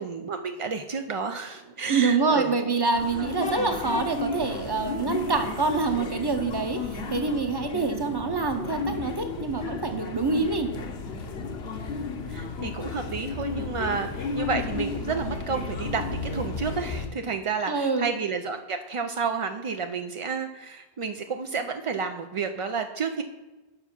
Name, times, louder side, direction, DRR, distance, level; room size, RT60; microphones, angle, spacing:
voice 1, 0.0-2.6 3.2-3.3 12.3-23.2, right 5 dB, 50° right, 6 dB, 0.4 m, -31 dB
voice 2, 1.9-10.7 17.7-18.1, right 4 dB, 25° right, 6 dB, 0.8 m, -26 dB
rabat trainstation, 2.9-17.1, left 4 dB, 75° left, 1.1 m, -33 dB
7.8 x 5.6 x 5.9 m, 1.2 s
omnidirectional pair, 1.1 m